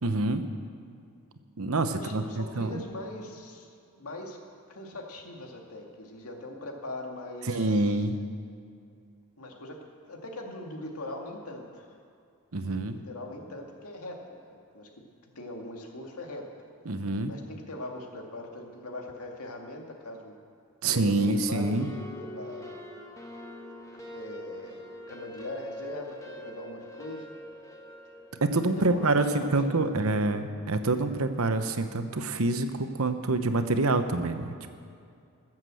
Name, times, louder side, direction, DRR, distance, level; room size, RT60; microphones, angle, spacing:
voice 1, 0.0-0.4 1.6-2.8 7.5-8.2 12.5-13.0 16.9-17.3 20.8-21.9 28.4-34.7, right 2 dB, 75° right, 8 dB, 1.0 m, -26 dB
voice 2, 1.9-4.4 4.7-7.9 9.4-11.9 12.8-14.9 15.4-16.5 17.3-20.4 20.8-22.8 23.9-27.3 28.7-30.4, left 1 dB, 85° left, 1 dB, 2.2 m, -41 dB
sound 1, 21.5-28.8, equal, 15° left, 1.3 m, -44 dB
20.5 x 7.5 x 7.7 m, 2.4 s
head